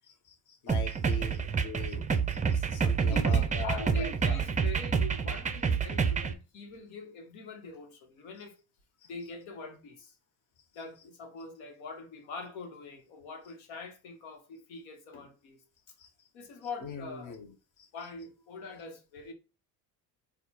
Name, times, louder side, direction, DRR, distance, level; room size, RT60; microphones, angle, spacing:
voice 1, 0.0-4.4 9.0-9.1 16.0-16.1 16.8-17.5 17.8-17.9, left 5 dB, 40° left, 1.2 m, -42 dB
sound 1, 0.7-6.3, right 6 dB, 15° right, 0.5 m, -28 dB
voice 2, 1.1-1.7 3.1-8.6 9.0-10.2 10.7-16.0 16.3-17.4 17.9-19.3, left 3 dB, 70° left, 1.3 m, -44 dB
4.3 x 2.4 x 4.1 m
hypercardioid pair, 65°, 48 cm